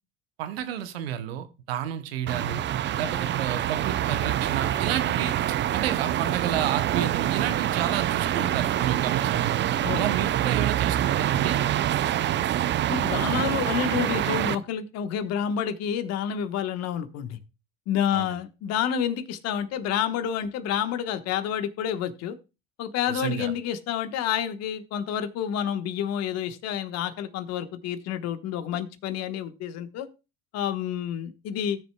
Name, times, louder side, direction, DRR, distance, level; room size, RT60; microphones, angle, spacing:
voice 1, 0.4-2.6 3.0-5.4 5.7-9.5 9.9-11.6 18.1-18.4 23.1-23.5, right 10 dB, 85° right, 11 dB, 0.9 m, -31 dB
sound 1, 2.3-14.6, right 12 dB, 40° right, 0.5 m, -26 dB
voice 2, 12.6-17.4 17.9-22.4 22.8-30.1 30.5-31.8, left 9 dB, 60° left, 9 dB, 1.2 m, -29 dB
18.0 x 6.7 x 2.2 m, 0.28 s
hypercardioid pair, 75°, 29 cm